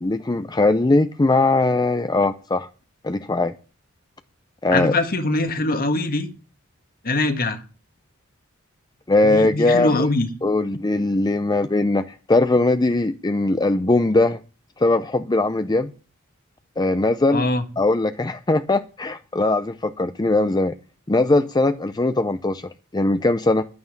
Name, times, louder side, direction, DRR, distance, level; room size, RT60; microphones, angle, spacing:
voice 1, 0.0-2.7 3.0-3.5 4.6-4.9 9.1-10.1 10.4-14.4 14.8-15.9 16.8-17.5 17.8-20.7 21.1-23.6, left 2 dB, 20° left, 0.5 m, -20 dB
voice 2, 4.7-6.3 7.0-7.6 9.2-10.3 17.3-17.6, left 2 dB, 45° left, 1.6 m, -22 dB
11.0 x 9.5 x 7.2 m
head